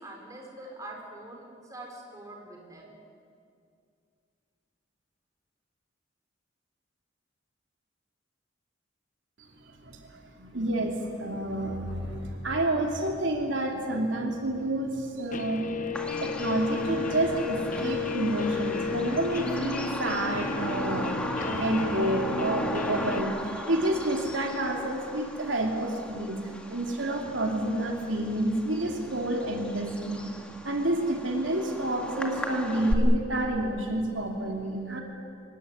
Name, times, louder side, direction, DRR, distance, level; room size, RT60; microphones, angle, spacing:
voice 1, 0.0-3.0, right 1 dB, 20° right, 0 dB, 4.9 m, -44 dB
voice 2, 9.8-15.7 16.2-21.1 21.5-26.4 26.7-30.3 30.6-35.0, right 1 dB, 80° right, 1 dB, 2.9 m, -29 dB
Guitar, 15.3-23.2, left 4 dB, 45° left, 0.9 m, -33 dB
Bird vocalization bird call bird song, 15.9-32.9, left 1 dB, 5° left, 1.9 m, -37 dB
sound 1, 21.4-26.8, left 1 dB, 70° left, 3.6 m, -46 dB
25.5 x 16.0 x 9.8 m, 2.3 s
head